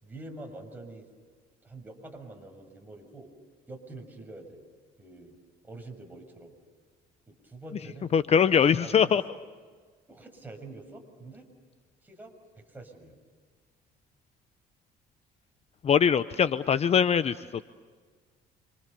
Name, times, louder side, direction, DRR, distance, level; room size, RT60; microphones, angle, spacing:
voice 1, 0.0-1.1 1.6-3.3 3.7-4.6 5.0-5.4 5.6-6.5 7.3-8.2 8.5-9.4 10.1-11.4 12.0-13.2, right 2 dB, 10° right, 2 dB, 6.7 m, -46 dB
voice 2, 8.1-9.2 15.8-17.6, left 7 dB, 40° left, 13 dB, 0.8 m, -22 dB
29.5 x 26.0 x 6.9 m, 1.5 s
cardioid pair, 110°, 17 cm